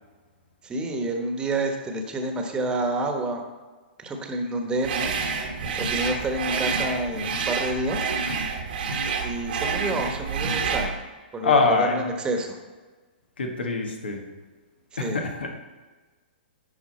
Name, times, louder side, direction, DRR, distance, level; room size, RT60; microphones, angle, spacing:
voice 1, 0.6-3.4 4.0-5.1 5.8-8.1 9.2-10.9 11.3-12.6 14.9-15.3, right 2 dB, 15° right, 4 dB, 1.1 m, -29 dB
sound 1, 4.8-10.9, right 5 dB, 65° right, 1.3 m, -28 dB
voice 2, 11.4-12.0 13.4-14.2 15.0-15.5, left 3 dB, 85° left, 3 dB, 1.5 m, -23 dB
10.5 x 4.8 x 4.3 m, 1.3 s
hypercardioid pair, 130°, 5 cm